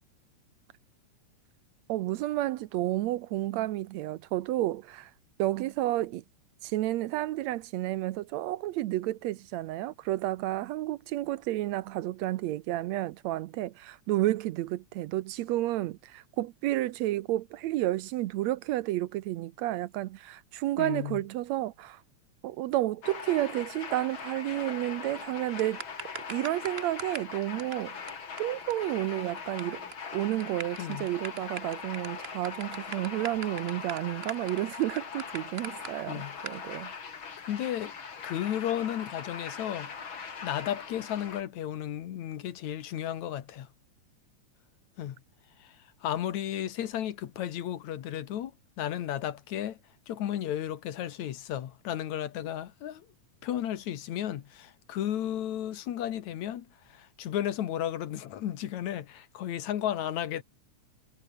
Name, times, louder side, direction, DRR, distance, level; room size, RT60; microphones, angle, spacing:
voice 1, 1.9-5.1 5.4-6.2 6.6-22.0 22.4-25.8 26.2-28.0 28.4-29.8 30.1-36.9, right 15 dB, 75° right, 1.9 m, -31 dB
voice 2, 20.8-21.2 30.8-31.1 36.1-36.3 37.5-37.9 38.2-39.9 40.4-43.7 45.0-45.2 45.6-45.8 46.0-49.8 50.1-53.1 53.4-60.4, left 11 dB, 75° left, 2.7 m, -34 dB
sound 1, 23.0-41.4, left 6 dB, 45° left, 3.1 m, -41 dB
sound 2, 25.6-27.3 27.6-27.7 28.1-28.2 28.4-28.5 28.7-28.8 29.0-29.6 29.9-30.1 30.4-35.9 36.4-36.6, right 5 dB, 50° right, 0.7 m, -40 dB
omnidirectional pair, 3.3 m